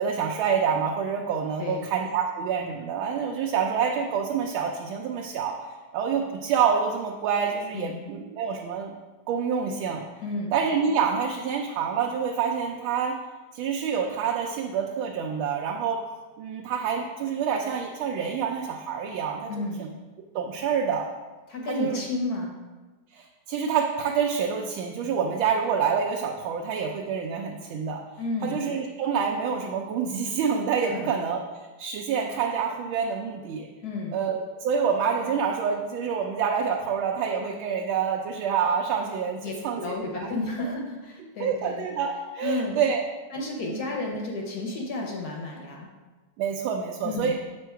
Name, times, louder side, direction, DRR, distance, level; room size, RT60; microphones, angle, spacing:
voice 1, 0.0-5.6 5.9-8.9 9.3-10.0 10.5-13.1 13.5-16.0 16.4-19.5 19.8-19.9 20.3-21.1 21.7-22.0 23.1-28.0 28.4-31.4 31.8-33.7 34.1-40.3 40.6-40.7 41.4-43.0 43.6-43.8 46.4-47.3, right 6 dB, 80° right, 0 dB, 1.4 m, -27 dB
voice 2, 10.2-10.5 19.5-19.8 21.5-22.5 28.2-28.7 30.8-31.2 33.8-34.1 39.4-41.9 42.4-42.8 43.3-45.9 47.0-47.3, left 2 dB, 55° left, 0 dB, 1.3 m, -32 dB
6.9 x 3.7 x 4.5 m, 1.2 s
omnidirectional pair, 2.2 m